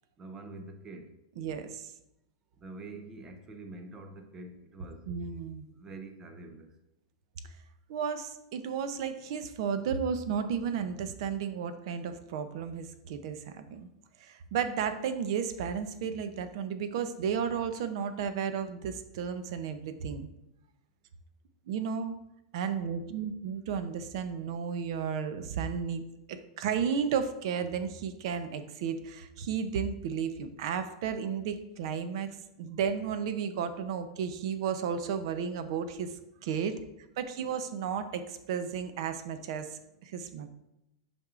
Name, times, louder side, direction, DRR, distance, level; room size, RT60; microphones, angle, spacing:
voice 1, 0.2-1.1 2.6-5.1 5.7-6.7 39.6-40.5, right 2 dB, 15° right, 6 dB, 0.6 m, -46 dB
voice 2, 1.4-1.9 5.1-5.7 7.9-13.9 14.2-20.3 21.7-22.2 22.5-32.3 32.6-36.1 36.4-36.7 37.2-40.5, right 7 dB, 55° right, 10 dB, 0.6 m, -33 dB
8.6 x 5.3 x 2.5 m, 0.87 s
supercardioid pair, 160°, 3 cm